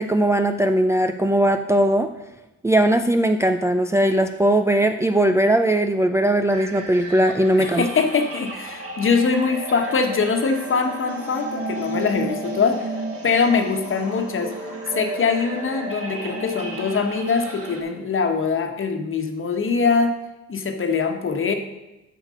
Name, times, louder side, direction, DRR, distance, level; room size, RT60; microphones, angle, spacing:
voice 1, 0.0-2.1 2.6-7.8, right 1 dB, 10° right, 5 dB, 0.5 m, -19 dB
sound 1, 6.5-17.8, right 2 dB, 50° right, 3.1 m, -33 dB
voice 2, 7.6-12.9 13.2-14.5 14.9-20.1 20.5-21.5, left 5 dB, 45° left, 5 dB, 1.3 m, -22 dB
7.7 x 6.4 x 6.3 m, 0.98 s
cardioid pair, 90°, 30 cm